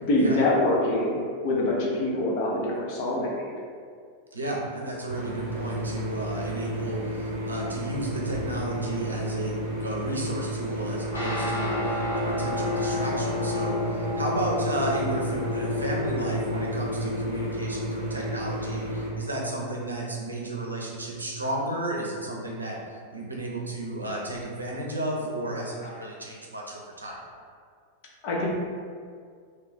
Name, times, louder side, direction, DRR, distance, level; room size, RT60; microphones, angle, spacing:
voice 1, 0.0-3.5 28.2-28.5, left 1 dB, 45° left, -3 dB, 0.7 m, -25 dB
voice 2, 4.3-27.2, right 1 dB, 80° right, -2 dB, 0.6 m, -33 dB
sound 1, 5.1-19.1, equal, 40° right, 1.0 m, -32 dB
sound 2, 11.1-21.6, left 1 dB, 85° left, 1.0 m, -32 dB
2.6 x 2.4 x 3.7 m, 2.1 s
figure-of-eight pair, 90°, 0 cm